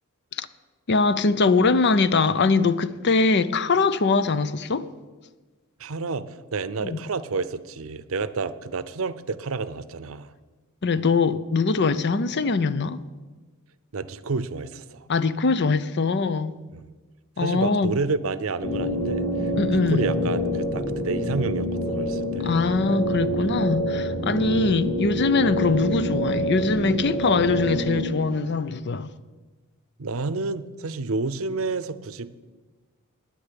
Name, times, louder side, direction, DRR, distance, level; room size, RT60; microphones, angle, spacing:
voice 1, 0.9-4.9 6.8-7.0 10.8-13.0 15.1-16.5 17.4-18.0 19.6-20.1 22.4-29.1, left 4 dB, 50° left, 0.6 m, -22 dB
voice 2, 5.8-10.3 13.9-15.1 16.7-16.9 17.4-19.5 19.9-22.6 30.0-32.5, right 4 dB, 70° right, 0.7 m, -30 dB
sound 1, 18.6-28.0, equal, 30° left, 2.7 m, -27 dB
10.0 x 9.4 x 9.8 m
head